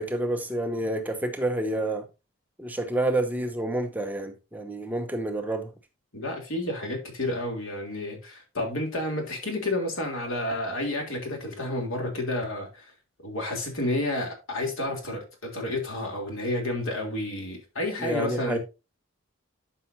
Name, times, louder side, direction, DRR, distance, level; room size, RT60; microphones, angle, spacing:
voice 1, 0.0-2.0 2.6-5.7 18.0-18.6, right 1 dB, 10° right, 0.7 m, -28 dB
voice 2, 6.1-12.9 13.2-18.6, left 1 dB, 70° left, 3.2 m, -30 dB
11.5 x 5.6 x 2.7 m
head